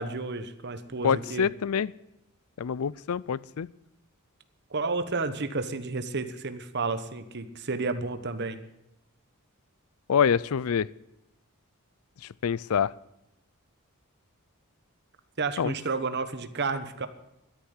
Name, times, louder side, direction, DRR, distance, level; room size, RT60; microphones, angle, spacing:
voice 1, 0.0-1.5 4.7-8.6 15.4-17.1, right 3 dB, 50° right, 10 dB, 1.1 m, -31 dB
voice 2, 1.0-1.9 2.6-3.7 10.1-10.9 12.4-12.9 15.6-15.7, left 7 dB, 75° left, 22 dB, 0.4 m, -26 dB
13.0 x 10.5 x 8.0 m, 0.88 s
head